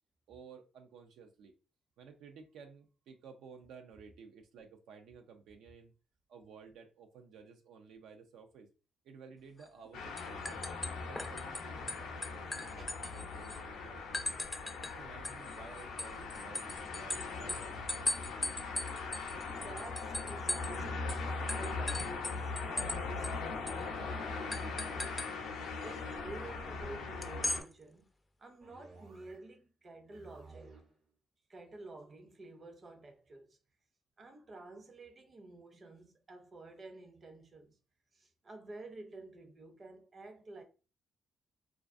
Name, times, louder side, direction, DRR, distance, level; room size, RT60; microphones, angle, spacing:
voice 1, 0.3-1.5 2.0-5.9 6.3-8.7 9.0-10.6 11.0-14.4 14.8-18.1, right 5 dB, 85° right, 0.3 m, -54 dB
sound 1, 9.6-9.9 10.2-11.6 11.9-13.6 14.1-14.9 15.2-20.8 21.1-21.2 21.5-23.0 23.2-23.3 23.7-23.8 24.5-25.3 27.2-27.6, left 2 dB, 15° left, 0.3 m, -38 dB
sound 2, 9.9-27.6, left 4 dB, 85° left, 0.5 m, -40 dB
voice 2, 12.8-13.2 19.3-25.5 25.7-28.1 28.4-30.8 31.5-33.6 34.2-37.8 38.1-40.6, right 2 dB, 35° right, 0.6 m, -51 dB
sound 3, 28.6-29.6 29.9-31.0, right 3 dB, 55° right, 1.0 m, -56 dB
2.3 x 2.3 x 2.4 m
cardioid pair, 90°, 0 cm